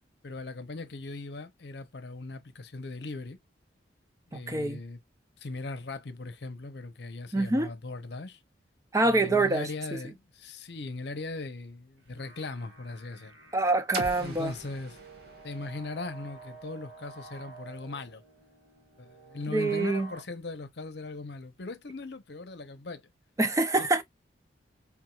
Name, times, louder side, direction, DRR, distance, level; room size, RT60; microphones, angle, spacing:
voice 1, 0.2-3.4 4.3-5.0 5.4-8.4 9.0-13.3 14.2-15.0 15.4-18.2 19.0-23.0 23.8-24.0, left 3 dB, 60° left, 0.8 m, -39 dB
voice 2, 4.3-4.8 7.3-7.7 8.9-9.7 13.5-14.5 19.5-20.1 23.4-24.0, right 2 dB, 15° right, 0.5 m, -25 dB
sound 1, 12.0-20.2, right 3 dB, 80° right, 2.2 m, -50 dB
sound 2, 13.9-17.8, right 2 dB, 55° right, 1.5 m, -42 dB
4.7 x 3.5 x 2.3 m
head